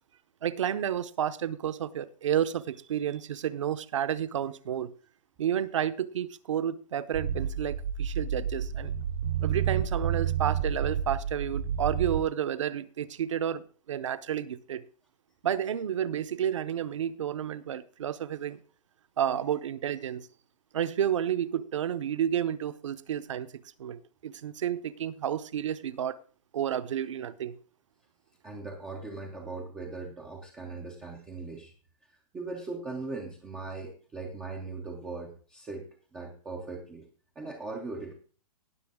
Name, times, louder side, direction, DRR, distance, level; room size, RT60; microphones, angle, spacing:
voice 1, 0.4-4.9 5.4-8.9 9.4-14.8 15.4-18.6 19.2-20.3 20.7-23.5 23.8-26.2 26.5-27.6, right 9 dB, 55° right, 14 dB, 0.8 m, -31 dB
sound 1, 7.1-12.2, right 8 dB, 85° right, 3.4 m, -30 dB
voice 2, 28.4-31.7 32.3-35.9 36.1-37.0 37.4-38.1, right 3 dB, 5° right, 0 dB, 0.4 m, -39 dB
18.0 x 6.1 x 3.6 m, 0.40 s
hypercardioid pair, 180°, 20 cm